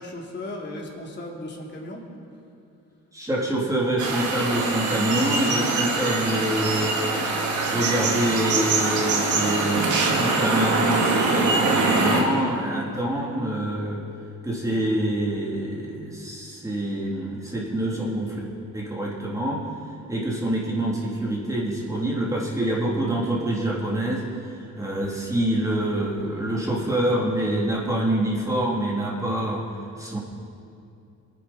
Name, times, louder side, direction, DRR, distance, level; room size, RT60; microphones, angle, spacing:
voice 1, 0.0-2.0, left 1 dB, 35° left, -1 dB, 3.2 m, -36 dB
voice 2, 3.1-6.9 7.6-9.9 10.2-14.0 14.4-18.4 18.7-19.6 20.1-24.2 24.8-29.6 30.0-30.2, right 1 dB, 10° right, -5 dB, 3.3 m, -26 dB
sound 1, 4.0-12.2, right 3 dB, 75° right, 2.4 m, -23 dB
22.5 x 10.0 x 4.4 m, 2.5 s
cardioid pair, 90°, 30 cm